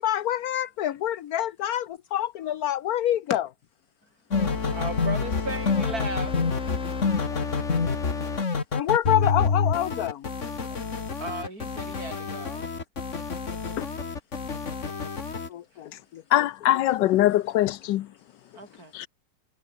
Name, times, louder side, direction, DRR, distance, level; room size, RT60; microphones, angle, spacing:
voice 1, 0.0-3.5 8.7-10.2 13.8-13.9 15.5-16.2, left 12 dB, 60° left, 1.3 m, -27 dB
sound 1, 4.3-15.5, left 5 dB, 40° left, 2.3 m, -28 dB
voice 2, 4.7-6.5 11.2-12.7 18.6-18.9, right 2 dB, 55° right, 7.0 m, -36 dB
voice 3, 16.3-18.1 18.9-19.1, left 14 dB, 80° left, 1.4 m, -22 dB
omnidirectional pair, 1.9 m